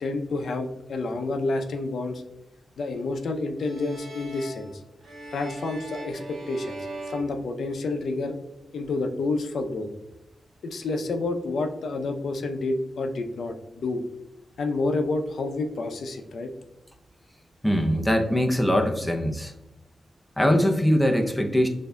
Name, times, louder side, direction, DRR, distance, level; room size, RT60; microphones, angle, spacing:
voice 1, 0.0-2.2 2.8-4.7 5.3-6.8 7.1-8.4 8.7-9.9 10.6-14.0 14.6-16.5, left 3 dB, 75° left, 5 dB, 0.5 m, -29 dB
sound 1, 3.6-8.2, right 2 dB, 55° right, 0.7 m, -40 dB
voice 2, 17.6-19.5 20.4-21.7, equal, 5° left, 2 dB, 0.5 m, -22 dB
6.6 x 2.6 x 2.2 m, 0.95 s
wide cardioid pair, 110°, 0 cm